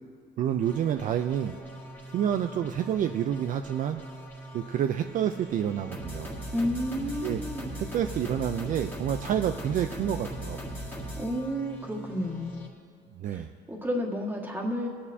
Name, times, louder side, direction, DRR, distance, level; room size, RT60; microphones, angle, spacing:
voice 1, 0.4-1.6 2.1-4.0 4.5-6.3 7.2-7.4 7.8-10.6 13.1-13.5, right 9 dB, 50° right, 7 dB, 0.4 m, -28 dB
sound 1, 0.6-12.7, right 1 dB, 10° left, 1.8 m, -40 dB
voice 2, 6.5-7.7 11.1-12.7 13.3-14.9, equal, 10° right, -1 dB, 1.6 m, -31 dB
21.0 x 8.5 x 2.7 m, 2.4 s
cardioid pair, 110°, 17 cm